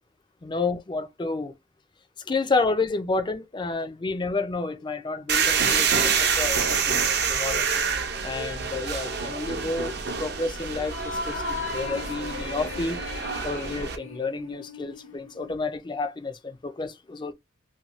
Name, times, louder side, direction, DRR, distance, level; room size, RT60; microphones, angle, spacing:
voice 1, 0.4-1.6 2.3-7.7 8.2-9.9 10.2-13.0 13.4-17.3, left 3 dB, 25° left, 0.4 m, -30 dB
sound 1, 5.3-14.0, right 6 dB, 55° right, 0.6 m, -27 dB
sound 2, 10.8-15.5, left 3 dB, 80° left, 0.8 m, -37 dB
2.7 x 2.2 x 2.9 m
head